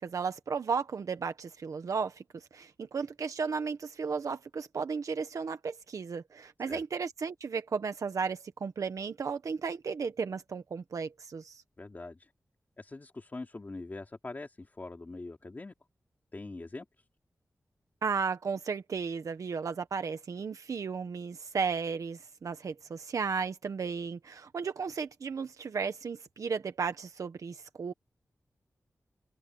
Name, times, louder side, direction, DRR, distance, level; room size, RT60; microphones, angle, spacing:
voice 1, 0.0-11.6 18.0-27.9, right 5 dB, 80° right, 1.3 m, -34 dB
voice 2, 11.8-12.3 12.8-15.7 16.3-17.0, left 2 dB, 35° left, 3.0 m, -43 dB
open air
wide cardioid pair, 115°, 6 cm